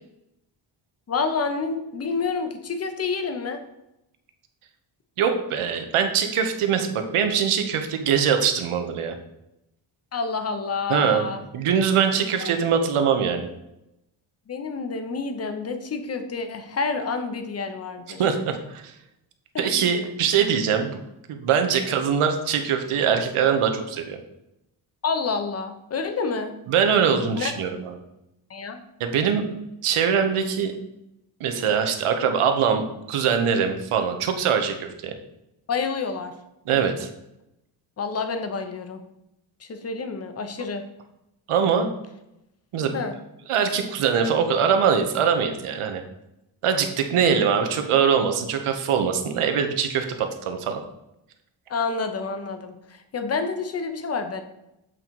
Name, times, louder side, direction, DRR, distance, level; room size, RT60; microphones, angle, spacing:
voice 1, 1.1-3.6 10.1-11.4 12.4-12.5 14.5-18.2 19.5-19.9 21.8-21.9 25.0-26.5 27.4-27.5 28.5-28.8 35.7-36.3 38.0-39.0 39.6-40.8 42.9-43.1 51.7-52.8 53.1-54.4, left 4 dB, 30° left, 7 dB, 0.6 m, -28 dB
voice 2, 5.2-9.2 10.9-11.3 11.5-13.5 18.2-18.9 19.6-21.0 21.3-24.2 26.7-28.0 29.0-29.4 29.8-30.7 31.4-35.1 36.7-37.1 41.5-41.9 42.7-43.0 43.5-46.0 46.6-50.8, right 7 dB, 85° right, 6 dB, 1.0 m, -22 dB
7.8 x 3.8 x 4.5 m, 0.86 s
wide cardioid pair, 180°, 49 cm